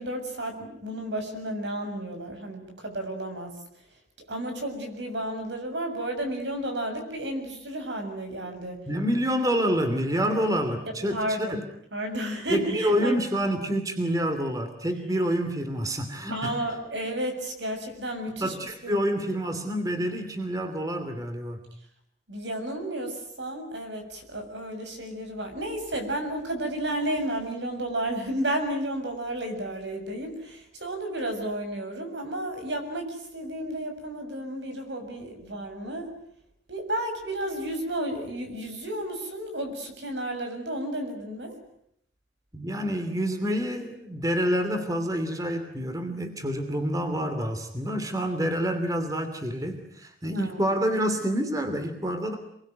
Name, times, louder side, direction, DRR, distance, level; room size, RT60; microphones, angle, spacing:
voice 1, 0.0-3.6 4.3-8.8 10.9-11.6 11.9-13.2 16.3-18.5 18.8-19.0 22.3-36.1 36.7-41.6 50.3-50.8, right 1 dB, 80° right, 5 dB, 7.2 m, -32 dB
voice 2, 8.9-11.6 12.5-16.5 18.4-21.7 42.5-52.4, equal, 20° right, 7 dB, 2.8 m, -27 dB
27.5 x 22.5 x 9.4 m, 0.70 s
head